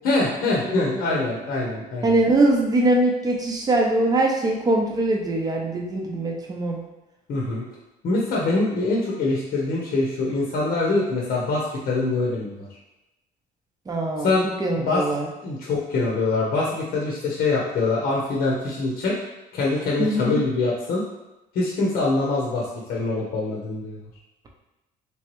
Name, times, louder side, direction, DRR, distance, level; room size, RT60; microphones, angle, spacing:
voice 1, 0.0-2.1 7.3-7.6 8.0-12.5 14.2-14.4 14.8-15.0 15.4-19.2 19.5-21.0 21.5-24.0, left 3 dB, 60° left, -3 dB, 0.8 m, -24 dB
voice 2, 0.6-1.2 2.0-6.8 13.9-15.3 20.0-20.4, right 2 dB, 20° right, 0 dB, 0.7 m, -22 dB
3.3 x 3.0 x 3.0 m, 0.97 s
cardioid pair, 110°, 17 cm